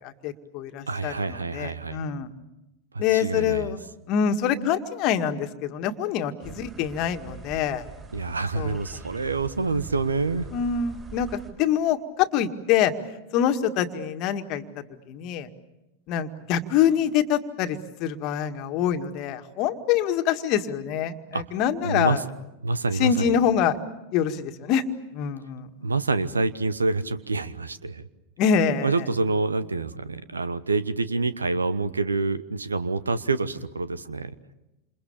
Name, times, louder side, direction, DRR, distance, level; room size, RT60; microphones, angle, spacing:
voice 1, 0.0-2.3 3.0-7.8 8.6-8.8 10.5-12.9 13.3-15.5 16.1-22.2 23.0-23.8 24.1-24.8 25.1-25.9 28.4-28.9, left 8 dB, 40° left, 7 dB, 1.9 m, -25 dB
voice 2, 0.9-2.0 2.9-3.7 8.1-10.5 21.3-21.4 21.8-22.2 22.6-23.3 25.8-28.0 28.8-34.3, right 3 dB, 75° right, 15 dB, 1.2 m, -27 dB
sound 1, 6.4-11.5, right 5 dB, 25° right, 6.4 m, -43 dB
29.0 x 28.0 x 7.2 m, 0.93 s
figure-of-eight pair, 90°, 0 cm